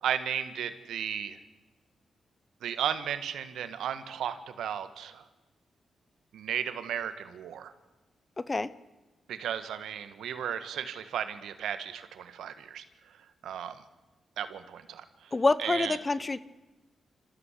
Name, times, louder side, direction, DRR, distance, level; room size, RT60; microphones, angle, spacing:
voice 1, 0.0-1.4 2.6-5.2 6.3-7.7 9.3-12.8 13.4-13.8 14.4-15.3 15.6-16.0, right 9 dB, 85° right, 11 dB, 1.5 m, -34 dB
voice 2, 8.4-8.7 15.3-16.4, left 3 dB, 30° left, 17 dB, 0.9 m, -27 dB
27.5 x 14.5 x 8.4 m, 1.1 s
cardioid pair, 65°, 0 cm